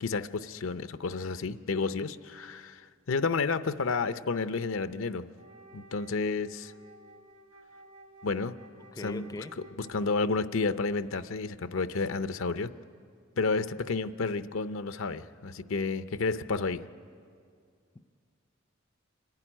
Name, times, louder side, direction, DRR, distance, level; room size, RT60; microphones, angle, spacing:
voice 1, 0.0-5.2 5.7-6.7 8.2-8.5 9.0-9.3 9.8-12.7 13.4-16.8, left 4 dB, 80° left, 12 dB, 0.6 m, -31 dB
Wind instrument woodwind instrument, 5.3-10.5, right 2 dB, 70° right, 1.7 m, -54 dB
voice 2, 8.9-9.5, left 2 dB, 20° left, 12 dB, 0.4 m, -40 dB
26.0 x 11.0 x 10.0 m, 2.2 s
head